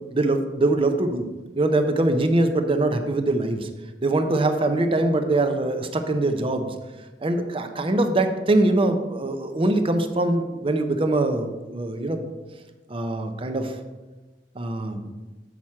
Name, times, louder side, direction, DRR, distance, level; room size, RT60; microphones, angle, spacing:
voice 1, 0.1-1.2 1.5-3.7 4.0-6.7 7.2-12.2 12.9-13.8 14.5-15.1, right 2 dB, 30° right, 7 dB, 0.6 m, -23 dB
7.3 x 6.1 x 4.4 m, 1.2 s
head